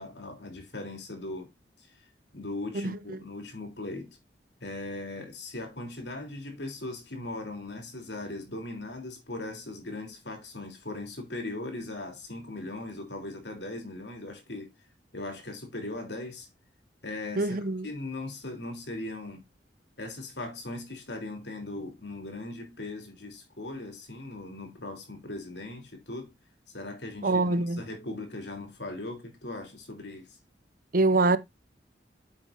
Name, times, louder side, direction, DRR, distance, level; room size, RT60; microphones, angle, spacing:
voice 1, 0.0-1.5 1.8-2.1 2.3-4.2 4.6-14.7 15.1-16.5 17.0-17.6 17.8-19.4 20.0-26.3 26.7-30.4, left 2 dB, 75° left, 3.2 m, -39 dB
voice 2, 2.7-3.2 17.4-17.9 27.2-27.8 30.9-31.4, right 2 dB, 50° right, 0.8 m, -25 dB
9.2 x 7.9 x 2.5 m
head